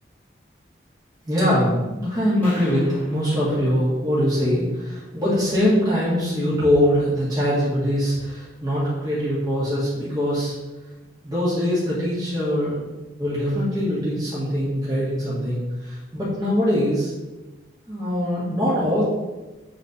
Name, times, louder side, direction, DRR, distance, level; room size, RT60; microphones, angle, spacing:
voice 1, 1.2-10.5 11.2-12.9 13.2-17.1 17.9-19.0, equal, 20° right, -10 dB, 1.9 m, -22 dB
sound 1, 2.4-4.8, left 1 dB, 10° left, 2.3 m, -43 dB
7.0 x 3.9 x 5.1 m, 1.1 s
head